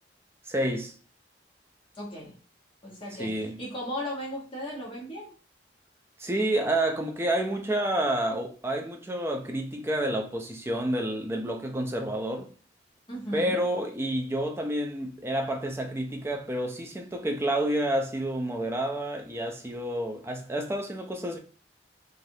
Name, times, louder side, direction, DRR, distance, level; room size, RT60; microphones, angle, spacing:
voice 1, 0.5-0.9 3.2-3.6 6.2-12.5 13.3-21.4, right 1 dB, 15° right, 0.4 m, -29 dB
voice 2, 1.9-2.4 2.8-5.3 13.1-13.6, equal, 30° left, 1.1 m, -36 dB
3.3 x 2.4 x 2.6 m
head